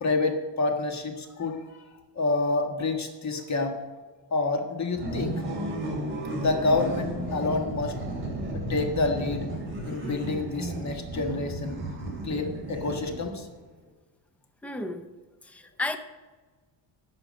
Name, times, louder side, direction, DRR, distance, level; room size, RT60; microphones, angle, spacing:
voice 1, 0.0-1.6 2.1-3.8 4.3-5.4 6.4-8.0 8.7-9.5 9.9-11.8 12.2-13.5, left 3 dB, 35° left, 3 dB, 1.6 m, -28 dB
sound 1, 4.9-13.5, right 1 dB, 25° right, 2.9 m, -33 dB
voice 2, 14.6-15.1 15.4-16.0, left 2 dB, 5° left, 8 dB, 0.6 m, -33 dB
12.0 x 7.1 x 6.4 m, 1.3 s
cardioid pair, 155°, 49 cm